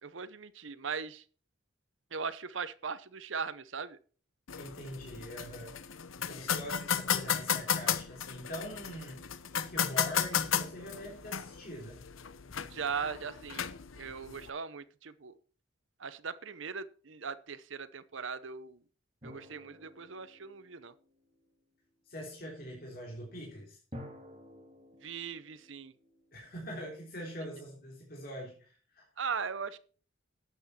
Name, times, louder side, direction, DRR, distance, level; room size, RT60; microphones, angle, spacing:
voice 1, 0.0-1.2 2.1-4.0 12.7-13.6 13.9-15.4 16.0-18.8 19.2-20.9 25.0-25.9 29.2-29.8, right 5 dB, 70° right, 15 dB, 0.8 m, -39 dB
sound 1, 4.5-14.5, left 8 dB, 85° left, 0.8 m, -34 dB
voice 2, 4.6-12.0 22.0-23.8 26.3-29.0, equal, 45° left, -2 dB, 3.4 m, -43 dB
sound 2, 19.2-21.5 23.9-26.8, equal, 30° right, 3.2 m, -52 dB
12.0 x 8.3 x 4.4 m, 0.41 s
head